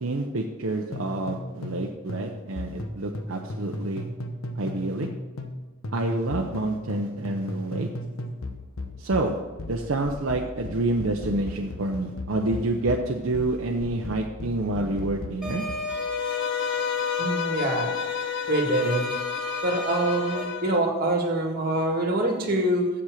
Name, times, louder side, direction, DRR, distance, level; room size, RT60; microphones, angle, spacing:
voice 1, 0.0-4.1 4.5-5.1 5.9-7.9 9.0-9.4 9.7-15.6, right 2 dB, 70° right, 1 dB, 0.7 m, -28 dB
sound 1, 0.9-1.8 2.1-5.6 5.8-15.9, left 1 dB, 80° left, 1.0 m, -36 dB
sound 2, 15.4-20.4, left 1 dB, 5° right, 2.3 m, -35 dB
Bowed string instrument, 15.9-20.9, left 8 dB, 55° left, 0.4 m, -30 dB
voice 2, 17.2-17.9 18.5-19.2 19.6-22.9, right 1 dB, 45° right, 2 dB, 1.7 m, -25 dB
7.5 x 7.2 x 6.5 m, 1.2 s
head